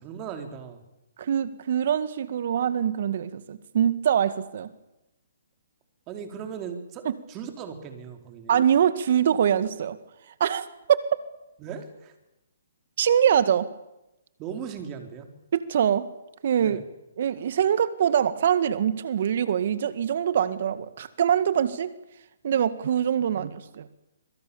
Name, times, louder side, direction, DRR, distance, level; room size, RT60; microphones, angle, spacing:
voice 1, 0.0-0.8 6.1-8.6 11.6-12.1 14.4-15.3 16.6-16.8, right 7 dB, 25° right, 5 dB, 4.4 m, -38 dB
voice 2, 1.2-4.7 7.1-7.2 8.5-10.0 10.4-11.1 13.0-13.7 15.5-16.1 16.4-16.8 17.2-21.9 22.4-23.9, right 9 dB, 55° right, 13 dB, 1.9 m, -24 dB
25.5 x 24.0 x 7.2 m, 0.92 s
hypercardioid pair, 140°, 0 cm